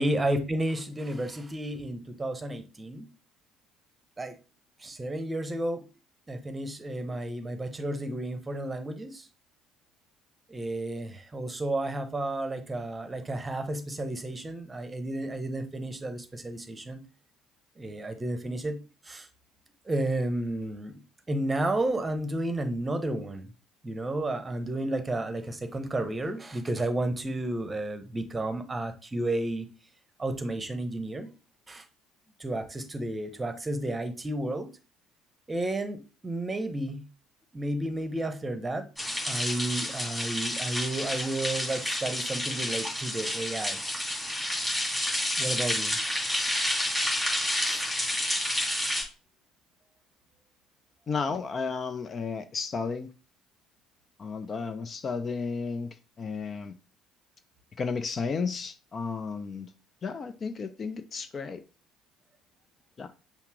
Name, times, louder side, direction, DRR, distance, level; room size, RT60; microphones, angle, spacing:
voice 1, 0.0-3.1 4.2-4.4 4.8-5.8 6.3-9.3 10.5-17.0 17.8-18.8 19.0-19.3 19.9-21.0 21.3-23.5 23.8-29.7 30.2-31.3 31.7-31.8 32.4-34.7 35.5-37.0 37.5-38.9 39.3-43.8 45.4-46.0 47.6-47.9, right 1 dB, 20° right, 0.9 m, -32 dB
sound 1, 39.0-49.0, left 1 dB, 5° left, 2.7 m, -30 dB
voice 2, 51.1-53.1 54.2-56.8 57.8-59.7 60.0-61.6 63.0-63.1, left 5 dB, 35° left, 0.4 m, -33 dB
5.6 x 2.0 x 4.6 m
figure-of-eight pair, 55°, 0 cm